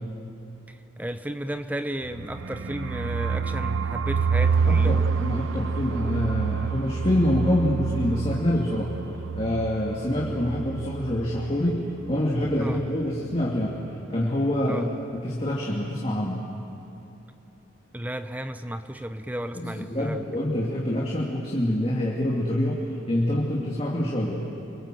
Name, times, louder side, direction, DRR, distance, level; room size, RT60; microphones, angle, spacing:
voice 1, 0.7-5.0 12.6-12.8 14.7-14.9 17.9-20.3, right 1 dB, 10° right, 9 dB, 0.7 m, -33 dB
sound 1, 2.0-11.8 12.0-12.2 12.4-12.9, right 5 dB, 75° right, 0.6 m, -27 dB
voice 2, 4.6-8.9 9.3-13.8 14.1-16.4 19.6-24.4, left 1 dB, 30° left, -3 dB, 2.5 m, -26 dB
29.5 x 23.5 x 7.7 m, 3.0 s
head